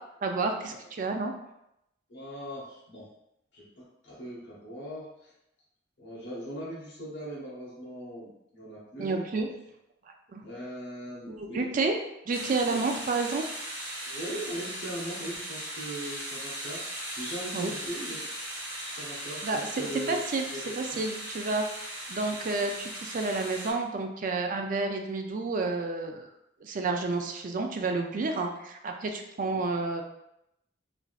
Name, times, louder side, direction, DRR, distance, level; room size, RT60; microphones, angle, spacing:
voice 1, 0.2-1.3 9.0-9.5 10.3-10.4 11.3-12.0 12.3-13.4 17.5-17.7 19.4-20.5 20.8-21.6 22.1-26.3 26.6-30.0, right 3 dB, 45° right, 4 dB, 0.3 m, -30 dB
voice 2, 2.1-3.1 3.5-5.3 6.0-9.2 10.4-11.9 12.6-12.8 14.1-18.3 18.9-21.0 29.4-29.6, equal, 65° left, -8 dB, 0.9 m, -40 dB
sound 1, 12.3-23.7, right 1 dB, 15° right, 0.8 m, -38 dB
3.3 x 2.5 x 2.3 m, 0.84 s
head